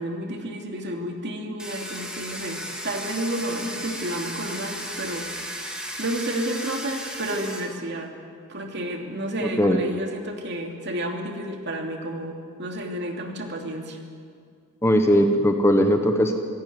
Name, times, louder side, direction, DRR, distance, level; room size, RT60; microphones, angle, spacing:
voice 1, 0.0-8.1 8.5-14.0, right 1 dB, 50° right, 2 dB, 2.8 m, -31 dB
Domestic sounds home sounds, 1.6-7.6, equal, 5° right, 2.6 m, -35 dB
voice 2, 9.4-9.8 14.8-16.4, equal, 10° left, 5 dB, 1.3 m, -19 dB
26.5 x 17.0 x 9.5 m, 2.2 s
head